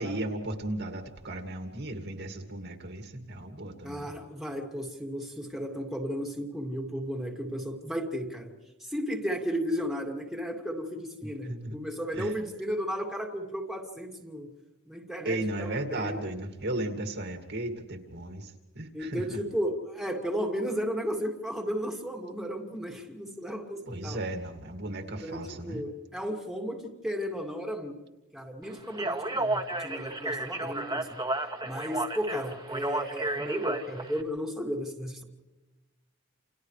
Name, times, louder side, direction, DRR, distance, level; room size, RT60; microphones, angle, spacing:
voice 1, 0.0-4.1 11.2-11.8 12.1-12.3 15.2-19.4 23.9-25.8, right 1 dB, 55° right, 4 dB, 2.3 m, -35 dB
voice 2, 3.8-8.5 8.8-14.5 14.9-16.2 18.9-24.2 25.0-28.0 28.3-31.2 31.6-35.2, equal, ahead, 1 dB, 2.4 m, -34 dB
Speech, 28.9-34.2, right 2 dB, 20° right, 1.8 m, -32 dB
29.0 x 28.5 x 3.3 m, 1.1 s
head